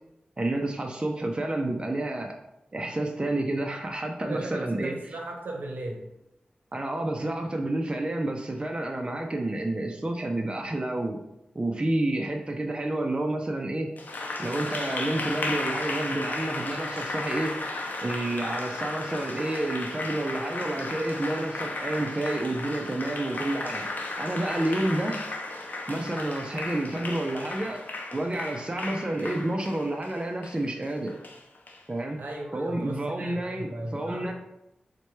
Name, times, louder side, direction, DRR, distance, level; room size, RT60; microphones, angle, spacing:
voice 1, 0.4-2.3 2.7-5.0 6.7-11.2 11.5-13.9 14.4-17.6 18.0-23.9 24.2-25.2 25.9-27.8 28.1-31.2 31.9-32.2 32.5-34.3, right 1 dB, 30° right, 2 dB, 0.4 m, -29 dB
voice 2, 4.3-6.1 32.2-34.3, right 2 dB, 70° right, 1 dB, 0.7 m, -37 dB
Applause, 14.0-31.8, left 2 dB, 60° left, 0.5 m, -34 dB
4.2 x 2.2 x 3.1 m, 0.87 s
cardioid pair, 45°, 3 cm